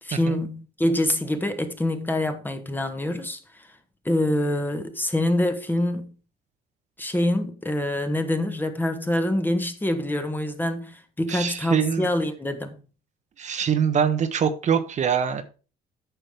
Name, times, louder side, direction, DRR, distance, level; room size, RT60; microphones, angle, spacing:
voice 1, 0.0-3.7 4.0-6.1 7.0-12.8, left 1 dB, 10° left, 1.5 m, -25 dB
voice 2, 11.3-12.1 13.4-15.4, right 7 dB, 45° right, 1.1 m, -23 dB
9.2 x 6.3 x 4.9 m
cardioid pair, 110°, 17 cm